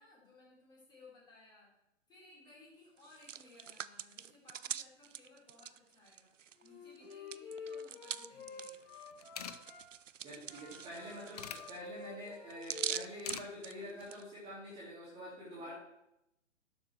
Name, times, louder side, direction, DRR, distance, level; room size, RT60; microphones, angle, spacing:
voice 1, 0.0-1.7 2.1-6.3 6.6-9.0 15.5-15.7, left 3 dB, 10° left, -7 dB, 4.4 m, -60 dB
Hands, 3.0-6.7 7.0-14.2, right 9 dB, 80° right, 0.6 m, -44 dB
Wind instrument woodwind instrument, 6.6-9.8 10.4-14.0, left 5 dB, 50° left, 3.5 m, -49 dB
sound 1, 8.8-8.9 9.1-9.6 10.8-11.6 12.9-13.5 13.8-14.1, left 8 dB, 30° left, 0.5 m, -44 dB
voice 2, 10.2-15.7, equal, 15° right, -8 dB, 2.9 m, -47 dB
12.0 x 7.4 x 4.6 m, 0.86 s
figure-of-eight pair, 135°, 38 cm